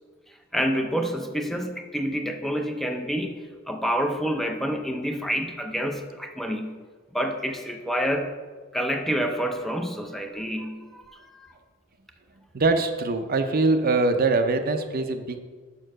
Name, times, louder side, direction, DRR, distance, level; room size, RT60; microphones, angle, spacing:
voice 1, 0.5-3.3 3.7-6.8 7.1-8.3 8.7-11.5, equal, ahead, 4 dB, 0.5 m, -28 dB
voice 2, 12.5-15.4, right 3 dB, 45° right, 8 dB, 0.6 m, -23 dB
6.6 x 5.6 x 6.3 m, 1.4 s
head